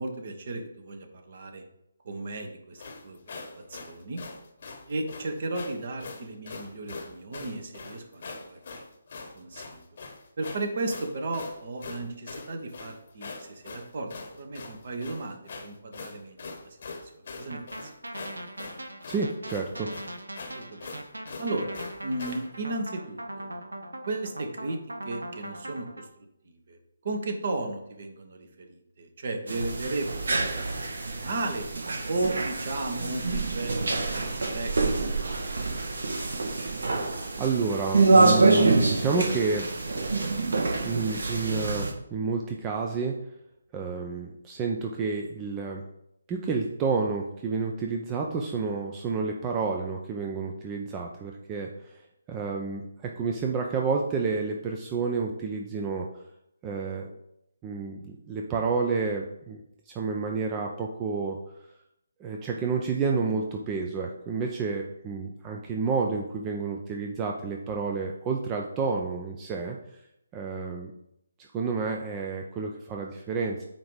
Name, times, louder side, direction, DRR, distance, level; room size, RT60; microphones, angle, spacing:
voice 1, 0.0-1.6 2.0-4.3 4.9-8.6 9.3-9.8 10.4-16.8 17.0-17.9 20.5-21.0 21.4-23.5 24.1-26.8 27.0-30.7 31.0-31.7 32.1-35.7, right 2 dB, 45° right, 5 dB, 1.2 m, -35 dB
sound 1, 2.8-22.5, left 4 dB, 45° left, 1.1 m, -42 dB
sound 2, 17.5-26.1, right 1 dB, 75° right, 0.9 m, -40 dB
voice 2, 19.1-19.9 37.4-39.7 40.8-43.2 43.7-45.8 46.3-56.1 56.6-57.1 57.6-61.4 62.2-69.8 70.3-70.9 71.4-73.6, right 4 dB, 20° right, 1 dB, 0.6 m, -30 dB
sound 3, 29.5-41.9, right 3 dB, 60° right, 1.4 m, -26 dB
8.7 x 3.0 x 5.2 m, 0.80 s
figure-of-eight pair, 145°, 0 cm